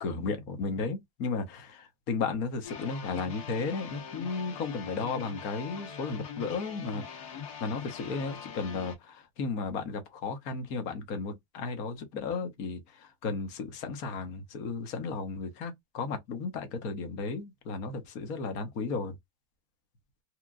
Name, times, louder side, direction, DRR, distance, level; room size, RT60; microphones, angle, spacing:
voice 1, 0.0-19.1, left 4 dB, 40° left, 0.9 m, -34 dB
sound 1, 2.6-9.0, left 7 dB, 65° left, 1.6 m, -42 dB
2.9 x 2.4 x 2.4 m
supercardioid pair, 160°, 18 cm